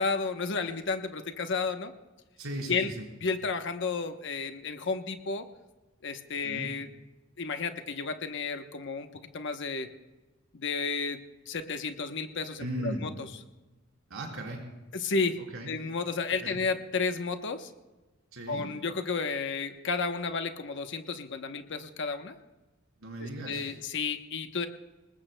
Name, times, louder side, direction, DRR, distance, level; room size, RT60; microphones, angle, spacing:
voice 1, 0.0-1.9 2.7-2.9 3.2-5.4 6.0-6.9 7.4-9.9 10.5-11.2 11.5-13.1 14.9-15.4 15.7-17.7 18.5-22.4 23.5-24.7, left 4 dB, 60° left, 7 dB, 0.9 m, -32 dB
voice 2, 2.4-3.1 6.4-6.7 12.6-13.0 14.1-14.6 15.4-15.7 16.4-16.6 18.3-18.7 23.0-23.8, right 1 dB, 90° right, -1 dB, 4.4 m, -37 dB
27.0 x 20.0 x 2.2 m, 1.1 s
head